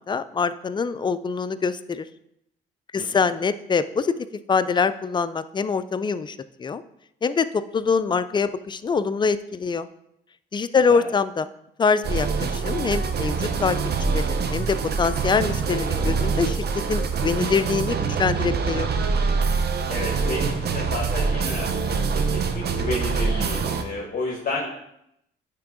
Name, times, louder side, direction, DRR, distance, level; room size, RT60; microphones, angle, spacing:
voice 1, 0.0-2.1 2.9-4.1 4.5-6.8 7.2-9.9 10.5-11.5 11.8-18.9, left 5 dB, 25° left, 13 dB, 0.4 m, -24 dB
sound 1, 12.0-23.8, right 5 dB, 55° right, 0.8 m, -25 dB
voice 2, 19.9-22.2 22.5-24.7, left 2 dB, 45° left, -2 dB, 1.5 m, -31 dB
10.0 x 3.5 x 3.7 m, 0.78 s
cardioid pair, 90°, 20 cm